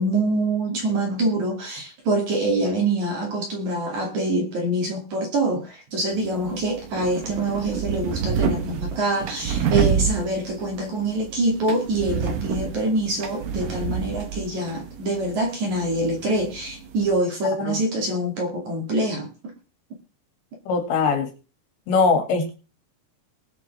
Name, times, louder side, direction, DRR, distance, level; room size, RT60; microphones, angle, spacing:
voice 1, 0.0-19.3, right 1 dB, 45° right, 3.4 m, -25 dB
sound 1, 6.1-17.2, right 7 dB, 65° right, 2.2 m, -29 dB
voice 2, 20.7-21.3 21.9-22.5, left 4 dB, 70° left, 4.5 m, -21 dB
20.5 x 7.4 x 3.5 m
omnidirectional pair, 5.3 m